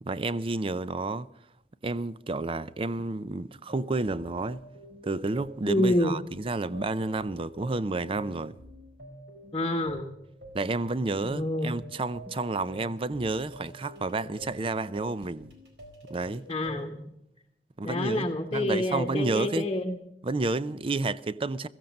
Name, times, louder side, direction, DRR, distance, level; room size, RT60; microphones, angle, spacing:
voice 1, 0.0-1.3 1.8-4.6 5.0-8.6 10.5-15.5 16.1-16.4 17.8-19.7 20.2-21.7, right 3 dB, 30° right, 0.5 m, -30 dB
sound 1, 3.7-16.9, right 1 dB, 75° right, 4.1 m, -48 dB
voice 2, 5.6-6.1 9.5-10.1 11.3-11.7 16.5-17.0 17.8-20.0, left 1 dB, 25° left, 1.1 m, -27 dB
16.0 x 14.5 x 5.3 m
head